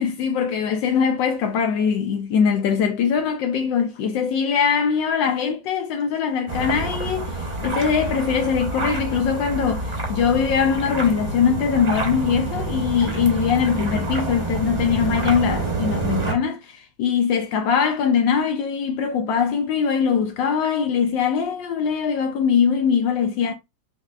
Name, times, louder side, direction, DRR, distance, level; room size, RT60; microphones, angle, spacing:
voice 1, 0.0-23.5, left 7 dB, 75° left, 1.2 m, -22 dB
sound 1, 6.5-16.3, right 3 dB, 30° right, 0.9 m, -27 dB
5.8 x 2.6 x 2.3 m
omnidirectional pair, 2.2 m